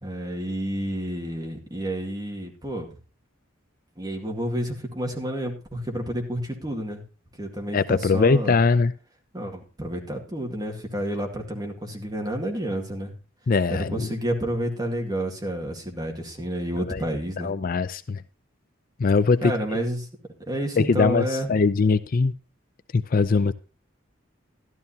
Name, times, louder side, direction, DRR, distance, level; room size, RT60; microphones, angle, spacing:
voice 1, 0.0-2.9 4.0-7.0 7.4-8.6 9.3-13.1 13.7-17.5 19.4-20.1 20.5-21.5, equal, 20° right, 2.1 m, -30 dB
voice 2, 7.7-8.9 13.5-14.1 16.9-17.0 17.4-18.2 19.0-19.5 20.8-22.3 22.9-23.5, left 4 dB, 45° left, 0.4 m, -21 dB
12.5 x 12.5 x 2.8 m
head